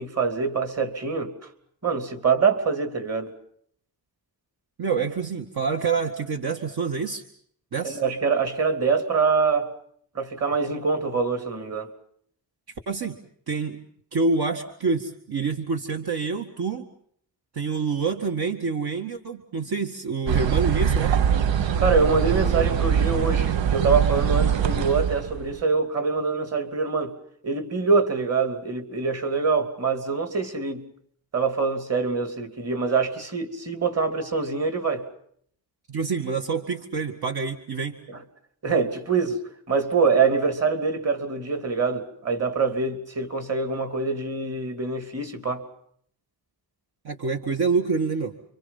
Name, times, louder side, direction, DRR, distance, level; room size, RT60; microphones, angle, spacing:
voice 1, 0.0-1.3 1.8-3.3 7.8-9.7 10.1-11.9 21.3-27.1 27.4-30.9 31.3-35.1 38.1-38.2 38.6-39.4 39.7-45.6, right 4 dB, 35° right, 2.9 m, -24 dB
voice 2, 4.8-7.2 7.7-8.0 12.9-13.2 13.5-13.8 14.1-16.9 17.5-21.2 35.9-38.0 47.0-48.3, right 4 dB, 55° right, 2.0 m, -27 dB
sound 1, 20.3-25.6, right 8 dB, 75° right, 1.0 m, -23 dB
30.0 x 25.0 x 5.7 m
wide cardioid pair, 140°, 45 cm